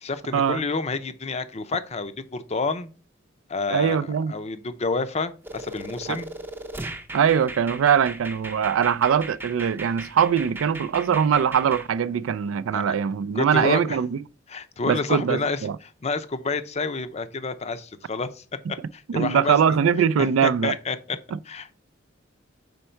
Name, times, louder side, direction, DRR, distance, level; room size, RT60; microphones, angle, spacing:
voice 1, 0.0-2.9 3.5-6.3 12.7-12.8 13.3-14.0 14.5-18.4 18.9-19.8 20.2-21.2 21.5-21.8, left 3 dB, 35° left, 0.6 m, -29 dB
voice 2, 3.7-4.3 6.1-6.2 7.1-14.2 14.9-15.8 19.1-20.7 21.3-21.4, right 7 dB, 90° right, 0.3 m, -22 dB
sound 1, 5.4-11.9, right 2 dB, 10° right, 0.5 m, -37 dB
5.3 x 4.6 x 4.4 m
head